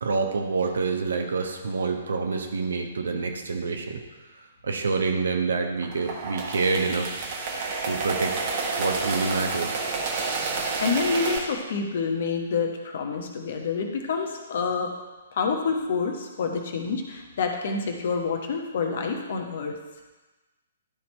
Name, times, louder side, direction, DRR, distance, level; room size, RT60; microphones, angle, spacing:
voice 1, 0.0-4.0 4.6-8.4 8.8-9.7, right 4 dB, 65° right, 4 dB, 1.1 m, -27 dB
sound 1, 5.8-11.4, right 4 dB, 40° right, 1.3 m, -29 dB
voice 2, 10.6-14.9 15.3-19.8, left 5 dB, 50° left, 3 dB, 1.1 m, -28 dB
11.5 x 4.3 x 4.4 m, 1.2 s
figure-of-eight pair, 120°, 0 cm